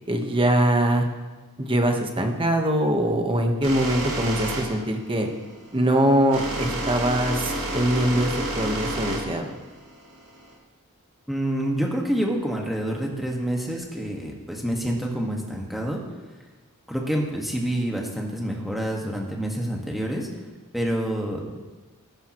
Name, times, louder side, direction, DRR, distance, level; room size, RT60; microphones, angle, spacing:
voice 1, 0.1-1.0 1.6-5.3 5.7-9.4, right 1 dB, 25° right, 4 dB, 1.3 m, -22 dB
sound 1, 3.6-10.5, right 1 dB, 80° right, 3.9 m, -30 dB
voice 2, 11.3-16.0 16.9-20.3 20.7-21.6, right 1 dB, ahead, -1 dB, 1.7 m, -27 dB
14.5 x 12.5 x 3.1 m, 1.2 s
head